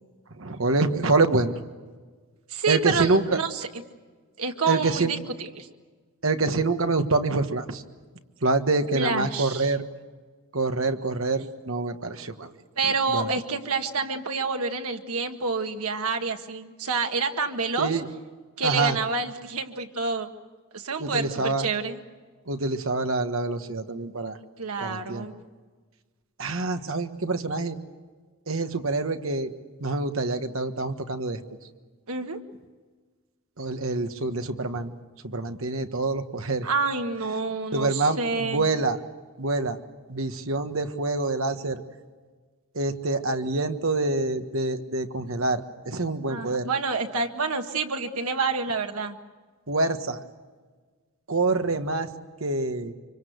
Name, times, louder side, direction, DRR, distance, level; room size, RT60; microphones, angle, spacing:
voice 1, 0.4-1.6 2.7-3.4 4.7-5.1 6.2-7.8 8.4-9.8 10.5-12.5 12.8-13.3 17.8-18.1 18.6-19.0 21.0-21.7 22.5-24.4 24.8-25.3 26.4-27.8 28.5-29.5 29.8-31.4 33.6-34.9 35.2-36.7 37.7-39.0 39.4-39.8 40.1-41.8 42.7-46.7 49.7-50.2 51.3-52.1 52.4-52.9, right 3 dB, 65° right, 7 dB, 1.5 m, -26 dB
voice 2, 2.5-3.7 4.4-5.7 8.9-9.7 12.8-18.0 18.6-20.3 20.7-22.0 24.6-25.4 32.1-32.4 36.6-38.7 46.3-49.2, right 4 dB, 90° right, 5 dB, 1.8 m, -28 dB
25.5 x 24.5 x 8.0 m, 1.4 s
head